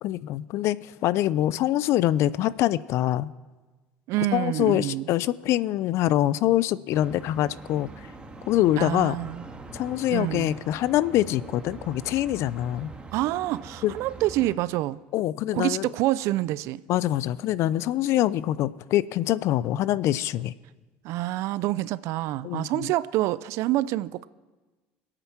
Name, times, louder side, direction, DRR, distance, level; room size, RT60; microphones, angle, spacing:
voice 1, 0.0-3.3 4.3-7.9 8.5-9.2 9.7-12.9 13.8-14.0 15.1-15.9 16.9-20.5 22.4-22.9, left 13 dB, 65° left, 0.6 m, -24 dB
voice 2, 4.1-5.0 8.8-9.4 10.1-10.5 13.1-15.0 15.5-16.8 21.0-24.3, right 16 dB, 65° right, 0.6 m, -27 dB
sound 1, 6.9-14.6, right 3 dB, 20° right, 2.3 m, -43 dB
25.5 x 9.0 x 5.8 m
hypercardioid pair, 75°, 5 cm